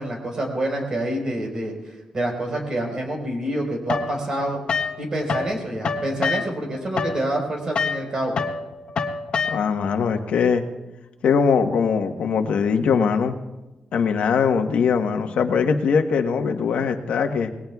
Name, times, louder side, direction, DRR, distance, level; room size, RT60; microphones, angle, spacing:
voice 1, 0.0-1.7 2.1-4.6 5.0-8.3, right 1 dB, 35° right, 1 dB, 4.4 m, -27 dB
sound 1, 3.9-5.5 5.8-9.9, left 5 dB, 55° left, 1.1 m, -27 dB
voice 2, 9.5-10.6 11.2-13.4 13.9-17.5, left 6 dB, 90° left, 6 dB, 1.2 m, -21 dB
26.5 x 20.0 x 2.4 m, 1.0 s
wide cardioid pair, 160°, 2 cm